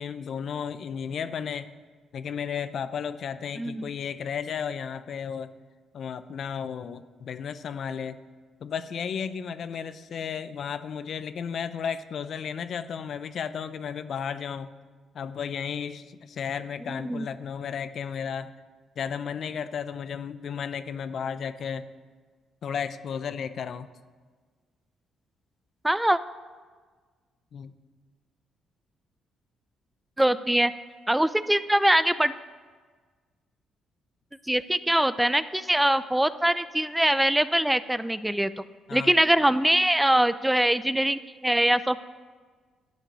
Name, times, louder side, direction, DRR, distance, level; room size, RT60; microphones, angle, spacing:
voice 1, 0.0-1.7 2.1-5.5 5.9-8.2 8.6-14.7 15.1-18.5 19.0-21.8 22.6-23.9 27.5-27.7 38.9-39.1, left 7 dB, 60° left, 12 dB, 0.6 m, -33 dB
voice 2, 25.8-26.2 30.2-30.7 31.1-32.3 34.5-38.6 38.9-42.0, right 1 dB, 5° right, 14 dB, 0.4 m, -23 dB
11.5 x 5.8 x 9.1 m, 1.5 s
cardioid pair, 90°, 0 cm